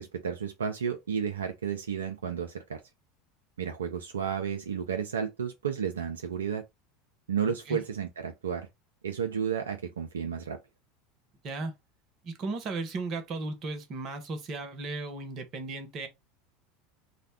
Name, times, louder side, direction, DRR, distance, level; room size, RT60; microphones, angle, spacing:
voice 1, 0.0-2.8 3.6-6.6 7.3-8.7 9.0-10.6, right 7 dB, 80° right, 0.3 m, -32 dB
voice 2, 12.2-16.1, right 3 dB, 45° right, 0.8 m, -35 dB
2.3 x 2.1 x 3.3 m
figure-of-eight pair, 75°, 0 cm